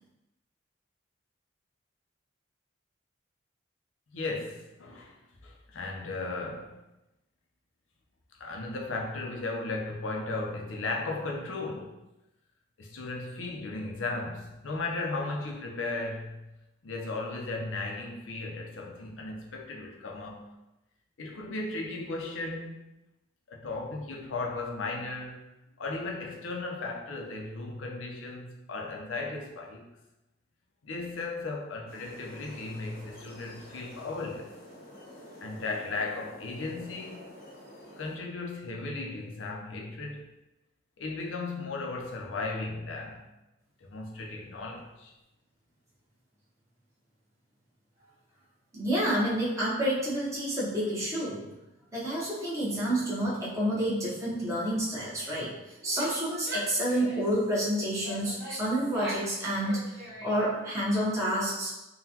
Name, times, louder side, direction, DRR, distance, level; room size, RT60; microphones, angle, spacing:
voice 1, 4.1-5.2 5.4-6.8 8.4-12.0 12.8-16.5 16.8-20.4 21.2-22.8 23.5-25.4 25.8-29.8 30.8-34.5 35.4-37.2 38.0-40.3 41.0-43.2 43.8-45.1, left 3 dB, 85° left, 0 dB, 0.6 m, -36 dB
sound 1, 31.9-38.2, left 1 dB, 50° left, 0.8 m, -49 dB
voice 2, 48.7-51.5 51.9-55.5 55.8-61.7, right 1 dB, 15° right, -7 dB, 0.8 m, -29 dB
Female speech woman speaking / Yell, 55.8-57.4 58.0-59.3 59.6-60.6, right 1 dB, 60° right, 1.1 m, -41 dB
3.8 x 2.2 x 2.8 m, 0.96 s
head